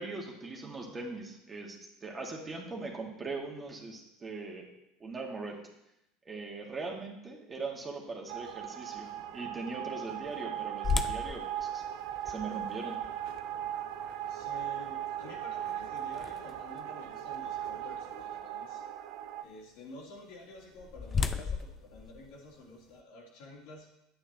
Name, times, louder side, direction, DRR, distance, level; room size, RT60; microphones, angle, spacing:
voice 1, 0.0-4.7 5.0-5.6 6.3-11.8 12.3-13.0, right 3 dB, 25° right, -1 dB, 2.1 m, -40 dB
sound 1, 8.3-19.4, right 11 dB, 65° right, 0.6 m, -38 dB
sound 2, 10.8-16.8 17.3-17.4 18.0-18.3 20.3-23.0, left 5 dB, 30° left, 0.5 m, -37 dB
voice 2, 14.3-18.8 19.4-24.0, left 2 dB, 70° left, -3 dB, 3.0 m, -50 dB
9.9 x 8.8 x 3.0 m, 0.85 s
hypercardioid pair, 90°, 0 cm